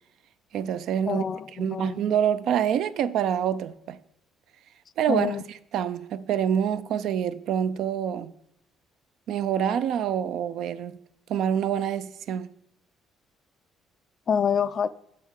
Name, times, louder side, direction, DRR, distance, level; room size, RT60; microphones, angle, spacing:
voice 1, 0.5-1.3 1.6-4.0 5.0-5.4 5.7-8.3 9.3-11.0 11.3-12.5, right 9 dB, 65° right, 0.4 m, -26 dB
voice 2, 1.1-2.0 5.1-5.4 14.3-14.9, left 7 dB, 35° left, 0.3 m, -26 dB
9.6 x 7.2 x 3.7 m
cardioid pair, 150°, 0 cm